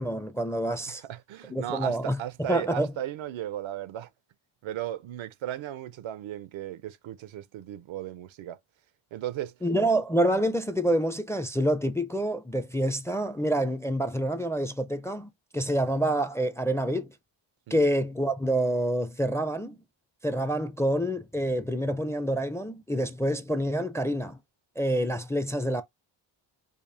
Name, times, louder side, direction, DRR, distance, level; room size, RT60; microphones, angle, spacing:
voice 1, 0.0-1.0 1.5-2.2 2.5-2.9 9.6-17.1 17.7-19.8 20.2-24.4 24.8-25.8, right 1 dB, 5° left, 0.4 m, -27 dB
voice 2, 0.9-4.1 4.6-8.6 9.1-9.5 17.7-17.8, right 12 dB, 75° right, 0.6 m, -36 dB
5.1 x 2.3 x 2.6 m
cardioid pair, 90°, 47 cm